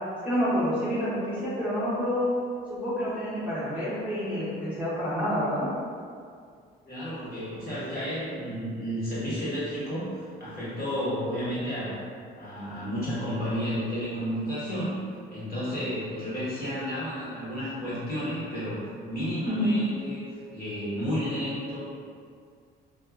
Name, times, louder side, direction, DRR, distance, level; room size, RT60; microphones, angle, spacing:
voice 1, 0.2-2.3 2.7-5.7 19.5-19.7, equal, 5° right, -12 dB, 0.7 m, -28 dB
voice 2, 6.8-12.0 12.4-15.0 15.3-18.8 19.0-20.2 20.5-21.8, equal, 50° left, -10 dB, 1.3 m, -32 dB
2.6 x 2.2 x 2.4 m, 2.2 s
cardioid pair, 90°, 20 cm